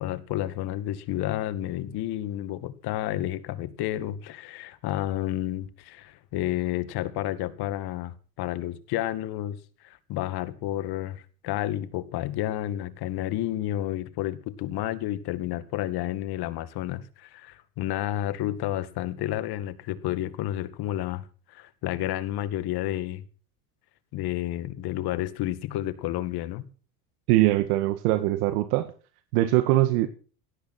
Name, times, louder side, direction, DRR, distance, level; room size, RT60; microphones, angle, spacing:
voice 1, 0.0-9.6 9.8-23.2 24.1-26.6, left 14 dB, 55° left, 14 dB, 2.1 m, -31 dB
voice 2, 27.3-28.9 29.3-30.1, right 16 dB, 75° right, 10 dB, 1.8 m, -22 dB
17.5 x 13.0 x 4.4 m, 0.39 s
supercardioid pair, 105°, 45 cm